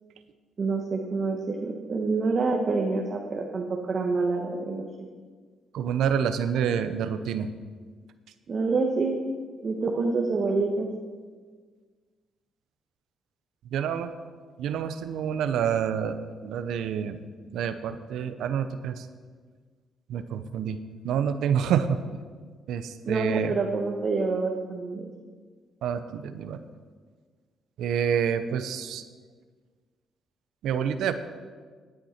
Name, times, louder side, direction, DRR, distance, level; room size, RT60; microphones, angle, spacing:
voice 1, 0.6-5.1 8.5-9.2 9.6-10.9 23.1-25.1, right 3 dB, 45° right, 1 dB, 1.1 m, -27 dB
voice 2, 5.7-7.5 13.7-14.1 14.6-17.2 17.5-19.0 20.1-20.8 21.0-22.0 22.7-23.5 25.8-26.6 27.8-29.0 30.6-31.1, right 8 dB, 80° right, 10 dB, 0.7 m, -27 dB
11.5 x 9.3 x 4.3 m, 1.6 s
cardioid pair, 90°, 0 cm